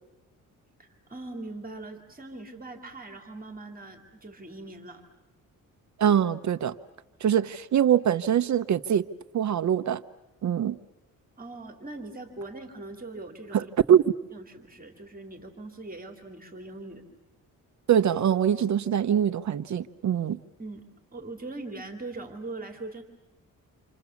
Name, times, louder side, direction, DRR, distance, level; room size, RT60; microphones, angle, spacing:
voice 1, 0.8-5.0 11.4-13.7 14.3-17.0 20.6-20.9 21.1-23.0, right 2 dB, 25° right, 5 dB, 2.7 m, -41 dB
voice 2, 6.0-6.7 7.2-9.0 9.3-10.0 10.4-10.8 13.5-14.0 17.9-20.4, right 9 dB, 55° right, 11 dB, 0.8 m, -23 dB
28.0 x 27.5 x 7.1 m, 1.0 s
cardioid pair, 120°, 34 cm